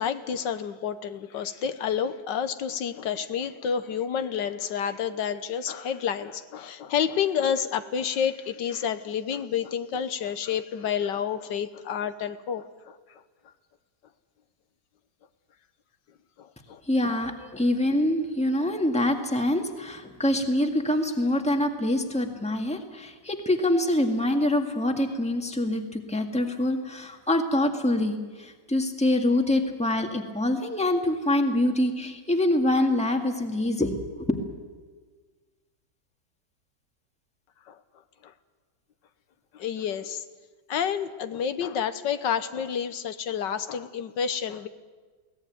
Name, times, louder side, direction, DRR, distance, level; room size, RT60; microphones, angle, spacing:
voice 1, 0.0-13.0 16.4-16.8 37.7-37.8 38.2-38.3 39.5-40.2 40.7-44.7, left 8 dB, 85° left, 11 dB, 1.7 m, -29 dB
voice 2, 16.9-34.4, left 1 dB, 5° left, 3 dB, 1.7 m, -25 dB
22.0 x 18.0 x 9.3 m, 1.4 s
omnidirectional pair, 1.9 m